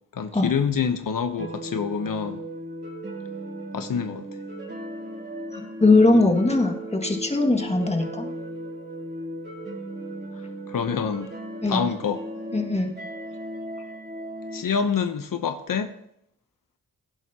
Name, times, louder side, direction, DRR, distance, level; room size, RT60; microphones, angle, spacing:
voice 1, 0.1-2.4 3.7-4.3 10.3-11.3 11.6-12.2 14.5-15.9, left 6 dB, 85° left, 0.9 m, -27 dB
sound 1, 1.4-14.6, right 1 dB, 30° right, 3.1 m, -36 dB
voice 2, 5.5-8.3 11.6-11.9 12.5-12.9, left 2 dB, 20° left, 2.0 m, -20 dB
17.0 x 11.0 x 2.9 m
cardioid pair, 65°, 33 cm